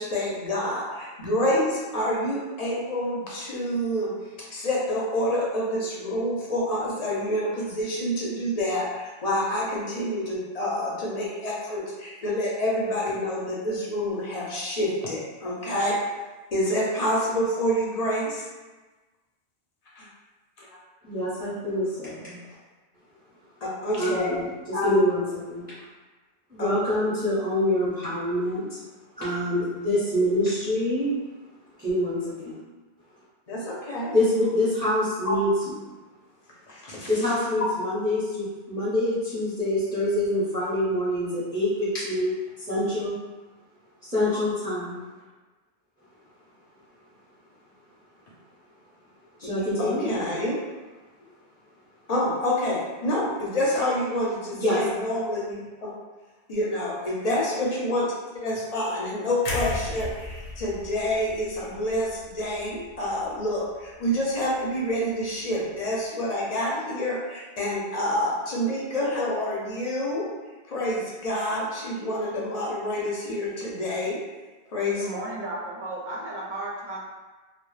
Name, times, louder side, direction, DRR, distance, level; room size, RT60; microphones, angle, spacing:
voice 1, 0.0-4.1 4.5-16.0 16.5-18.4 20.0-20.1 20.6-20.7 23.6-24.4 24.7-25.1 26.6-26.7 33.5-34.2 35.2-35.8 36.7-37.7 49.4-49.5 49.8-50.5 52.1-55.9 56.5-58.1 58.4-70.3 70.7-74.2 74.7-75.1, left 1 dB, 50° left, -5 dB, 0.4 m, -28 dB
voice 2, 21.0-22.4 24.0-25.7 26.5-28.8 29.2-31.1 31.8-32.5 34.1-35.7 37.1-42.3 42.7-43.1 44.0-45.0 49.4-50.1 54.5-54.8, left 1 dB, 10° right, -12 dB, 0.4 m, -26 dB
sound 1, 59.5-63.5 63.8-64.0, left 2 dB, 85° left, 0.9 m, -36 dB
voice 3, 75.0-77.0, right 2 dB, 55° right, -4 dB, 0.6 m, -34 dB
2.0 x 2.0 x 3.0 m, 1.2 s
omnidirectional pair, 1.1 m